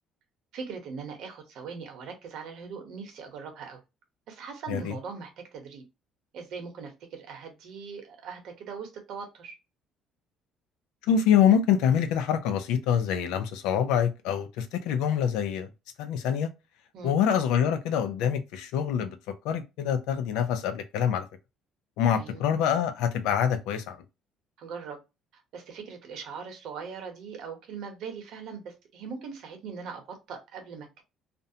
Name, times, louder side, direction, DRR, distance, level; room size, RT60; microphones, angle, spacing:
voice 1, 0.5-3.8 4.3-5.8 6.3-9.5 16.9-17.2 22.1-22.4 24.6-25.0 25.3-31.0, right 5 dB, 70° right, 0.9 m, -40 dB
voice 2, 11.0-15.7 16.0-16.5 17.0-21.3 22.0-24.0, left 8 dB, 85° left, 0.5 m, -25 dB
2.5 x 2.1 x 2.6 m
cardioid pair, 110°, 0 cm